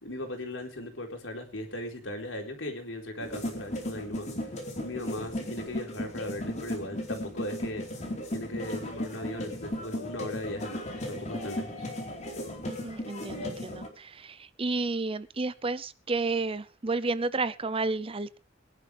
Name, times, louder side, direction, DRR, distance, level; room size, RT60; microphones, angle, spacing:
voice 1, 0.0-4.3 4.8-7.8 8.3-11.9, left 1 dB, 85° left, 4.2 m, -38 dB
sound 1, 3.2-13.9, left 1 dB, 40° left, 4.4 m, -36 dB
voice 2, 12.6-18.4, right 3 dB, 30° right, 0.6 m, -31 dB
22.5 x 11.0 x 3.4 m
head